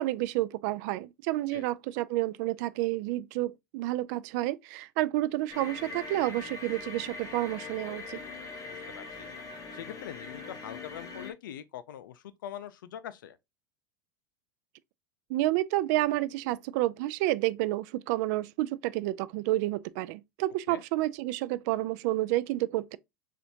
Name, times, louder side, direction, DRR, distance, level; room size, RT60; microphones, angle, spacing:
voice 1, 0.0-8.2 15.3-23.0, right 16 dB, 60° right, 0.4 m, -30 dB
sound 1, 5.5-11.3, left 3 dB, 35° left, 1.4 m, -42 dB
voice 2, 8.6-9.3 9.7-13.4 20.7-20.8, left 10 dB, 80° left, 0.5 m, -43 dB
6.7 x 2.6 x 2.7 m
hypercardioid pair, 100°, 11 cm